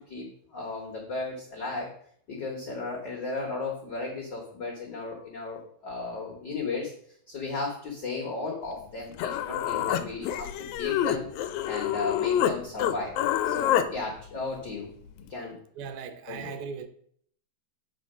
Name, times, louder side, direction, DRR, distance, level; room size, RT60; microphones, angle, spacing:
voice 1, 0.1-1.9 2.3-6.9 7.3-11.3 11.6-13.1 13.4-14.9 15.2-15.6 16.3-16.6, left 3 dB, 60° left, 1.1 m, -35 dB
Human voice, 8.8-8.9 9.2-12.5 12.8-13.9, left 11 dB, 80° left, 1.8 m, -27 dB
voice 2, 15.8-16.9, right 6 dB, 75° right, 2.0 m, -38 dB
8.0 x 4.1 x 5.4 m
omnidirectional pair, 3.7 m